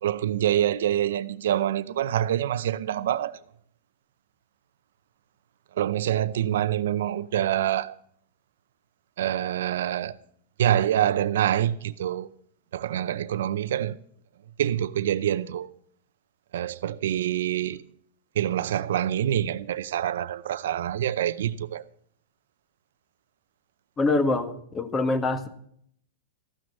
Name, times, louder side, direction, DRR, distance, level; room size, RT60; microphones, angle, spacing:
voice 1, 0.0-3.4 5.8-8.0 9.2-10.1 10.6-12.3 12.7-14.0 14.6-15.7 16.5-17.8 18.4-21.8, right 11 dB, 80° right, 0.6 m, -26 dB
voice 2, 24.0-25.5, left 3 dB, 20° left, 1.5 m, -25 dB
14.5 x 6.3 x 8.2 m
hypercardioid pair, 125°, 0 cm